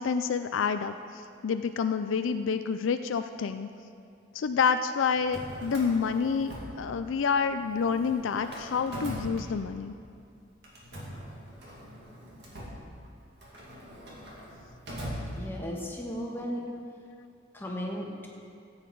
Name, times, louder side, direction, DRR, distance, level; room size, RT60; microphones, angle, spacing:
voice 1, 0.0-3.7 4.3-9.9, left 6 dB, 75° left, 9 dB, 0.4 m, -28 dB
Drawer open or close, 5.1-7.3 7.6-10.0 10.6-15.9, equal, 55° right, 2.3 m, -42 dB
voice 2, 15.4-16.7 17.5-18.3, equal, 10° left, -1 dB, 1.3 m, -35 dB
14.5 x 8.9 x 4.6 m, 2.4 s
head